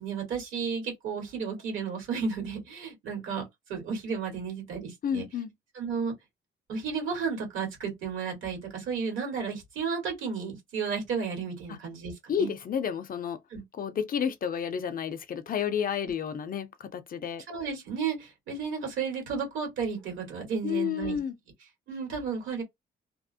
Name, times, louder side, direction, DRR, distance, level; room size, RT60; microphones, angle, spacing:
voice 1, 0.0-3.4 3.7-5.3 5.8-6.1 6.7-12.5 13.5-13.6 17.5-21.2 21.9-22.6, right 6 dB, 85° right, 1.6 m, -33 dB
voice 2, 5.0-5.5 12.3-13.4 13.8-17.4 20.6-21.3, left 7 dB, 45° left, 0.5 m, -31 dB
2.7 x 2.0 x 2.6 m
cardioid pair, 90°, 20 cm